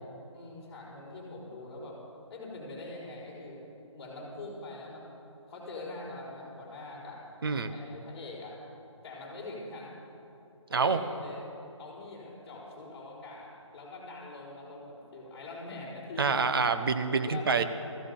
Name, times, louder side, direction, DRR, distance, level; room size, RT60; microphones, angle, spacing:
voice 1, 0.3-2.0 2.3-3.6 3.9-5.2 5.5-7.2 7.6-8.6 9.0-9.9 10.7-11.4 11.8-16.4 17.3-17.5, left 2 dB, 20° left, -8 dB, 4.5 m, -43 dB
voice 2, 16.2-17.6, right 5 dB, 45° right, 9 dB, 0.9 m, -26 dB
15.0 x 15.0 x 5.4 m, 3.0 s
figure-of-eight pair, 165°, 16 cm